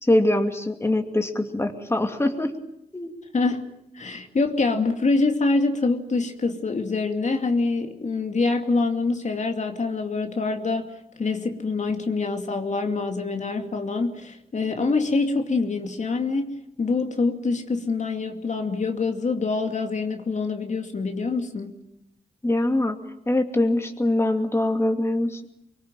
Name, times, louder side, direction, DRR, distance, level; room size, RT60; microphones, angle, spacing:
voice 1, 0.0-2.5 2.9-3.1 22.4-23.0 23.3-25.5, left 1 dB, 15° left, 5 dB, 2.6 m, -23 dB
voice 2, 3.9-10.9 11.2-21.7, left 3 dB, 50° left, 4 dB, 2.5 m, -25 dB
24.5 x 22.0 x 9.1 m, 0.80 s
cardioid pair, 80°, 16 cm